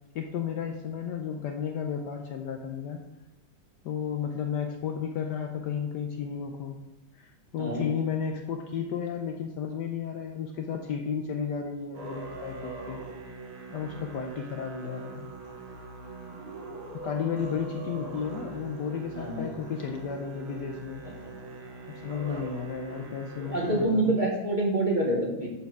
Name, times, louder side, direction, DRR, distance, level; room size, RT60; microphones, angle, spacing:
voice 1, 0.1-3.0 3.8-6.8 7.1-13.0 13.7-15.3 17.0-21.0 21.9-24.2, left 7 dB, 70° left, 3 dB, 1.1 m, -33 dB
Musical instrument, 11.9-23.8, right 3 dB, 80° right, 2.2 m, -42 dB
voice 2, 19.1-19.5 21.0-21.1 23.5-25.5, right 1 dB, 25° right, -2 dB, 1.5 m, -26 dB
10.5 x 4.7 x 4.8 m, 0.97 s
omnidirectional pair, 2.2 m